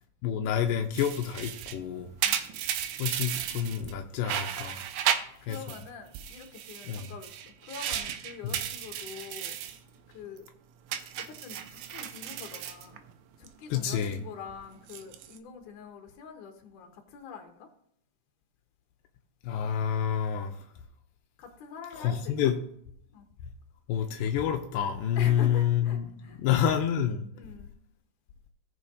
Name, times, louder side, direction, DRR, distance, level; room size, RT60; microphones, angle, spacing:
voice 1, 0.2-2.1 3.0-4.8 5.5-5.6 6.9-7.1 8.4-8.6 13.7-14.2 19.4-20.6 22.0-22.6 23.9-26.0 26.4-27.3, left 9 dB, 90° left, 2.4 m, -28 dB
sound 1, 0.9-3.9 4.2-5.8 6.1-9.8 10.1-10.5 10.9-13.5 13.8-14.2 14.8-15.4, right 10 dB, 80° right, 2.2 m, -34 dB
voice 2, 5.4-9.6 10.1-10.5 11.2-13.0 13.4-17.7 21.4-22.5 23.1-23.3 25.2-26.4 27.3-27.7, left 6 dB, 70° left, 2.7 m, -45 dB
17.5 x 6.3 x 2.7 m
omnidirectional pair, 3.9 m